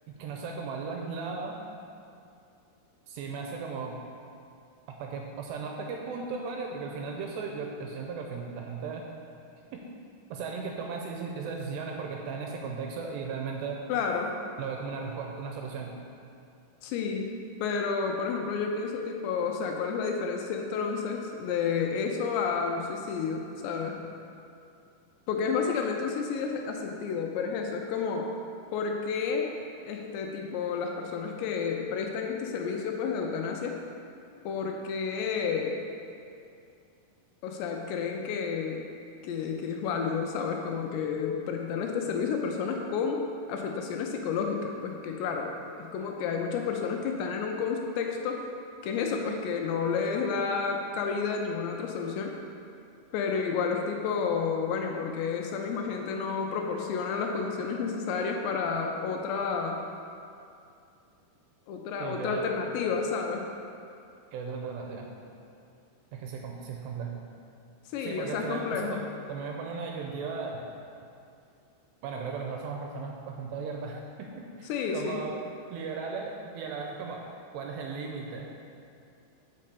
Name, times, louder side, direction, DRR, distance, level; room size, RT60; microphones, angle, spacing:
voice 1, 0.1-1.6 3.1-4.0 5.0-9.0 9.7-9.8 10.3-13.8 14.6-15.9 62.0-62.4 64.3-65.0 66.1-67.2 68.0-69.0 69.3-70.6 72.0-74.3 74.6-75.4 75.7-77.2 77.5-78.5, right 5 dB, 80° right, 1 dB, 2.6 m, -36 dB
voice 2, 13.9-14.4 16.8-17.3 17.6-24.0 25.3-28.3 28.7-29.5 29.9-33.8 34.4-35.8 37.4-38.9 39.2-45.5 45.8-48.4 48.8-52.3 53.1-59.8 61.7-63.5 67.9-69.0 74.7-75.2, left 5 dB, 80° left, 2 dB, 2.7 m, -30 dB
7.4 x 5.4 x 6.7 m, 2.5 s
omnidirectional pair, 5.3 m